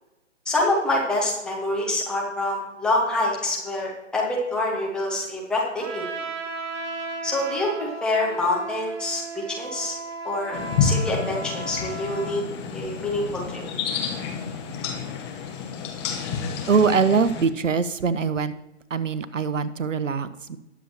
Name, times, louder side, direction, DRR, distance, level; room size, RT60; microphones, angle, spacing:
voice 1, 0.5-6.2 7.2-9.9 10.2-12.4 12.7-13.6, left 2 dB, ahead, -3 dB, 0.6 m, -26 dB
Trumpet, 5.8-12.4, right 3 dB, 20° right, 1.2 m, -35 dB
sound 1, 10.5-17.5, left 6 dB, 20° left, 1.1 m, -29 dB
voice 2, 16.7-18.5 18.9-20.6, right 5 dB, 80° right, 14 dB, 0.9 m, -23 dB
20.0 x 7.1 x 2.9 m, 0.97 s
figure-of-eight pair, 145°, 37 cm